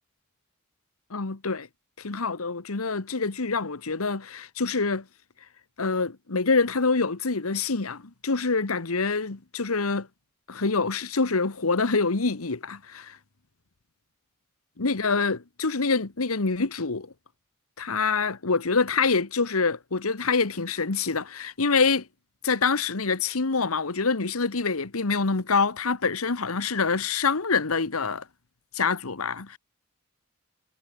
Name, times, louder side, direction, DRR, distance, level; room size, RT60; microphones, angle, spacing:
voice 1, 1.1-1.7 2.0-5.0 5.8-10.1 10.5-13.2 14.8-17.1 17.8-22.1 22.4-28.2 28.7-29.6, left 4 dB, 90° left, 1.3 m, -26 dB
head